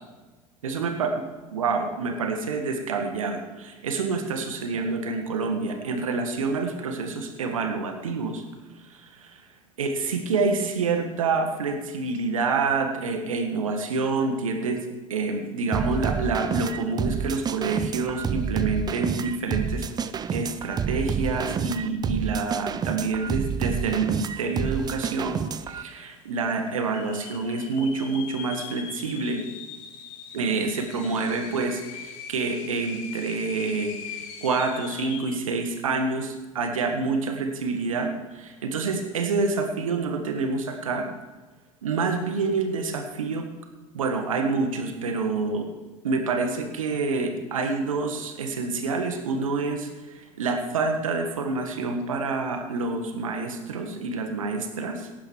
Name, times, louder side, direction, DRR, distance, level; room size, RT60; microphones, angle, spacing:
voice 1, 0.6-1.1 1.5-8.4 8.8-9.4 9.8-14.8 15.1-19.9 20.3-29.4 30.3-41.1 41.8-43.5 43.9-45.7 46.0-55.1, right 4 dB, 75° right, 4 dB, 1.7 m, -27 dB
sound 1, 15.7-25.8, right 7 dB, 25° right, 0.5 m, -29 dB
sound 2, 24.5-24.6 24.8-25.4 25.9-26.0 26.7-35.5, left 7 dB, 55° left, 1.6 m, -41 dB
18.5 x 10.0 x 3.2 m, 1.2 s
figure-of-eight pair, 70°, 18 cm